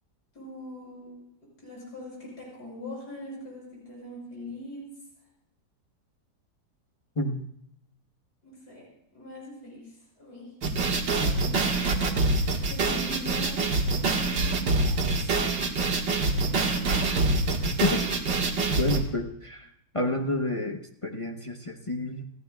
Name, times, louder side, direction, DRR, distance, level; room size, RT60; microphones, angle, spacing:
voice 1, 0.3-1.2 1.6-4.9 8.4-8.9 9.1-10.5 11.2-15.6 16.3-17.1, left 1 dB, 60° left, -4 dB, 6.9 m, -42 dB
sound 1, 10.6-19.0, right 3 dB, 85° right, 2.3 m, -25 dB
voice 2, 18.8-19.7 19.9-22.3, left 2 dB, 25° left, 2 dB, 0.7 m, -29 dB
28.0 x 15.5 x 2.3 m, 0.76 s
omnidirectional pair, 1.9 m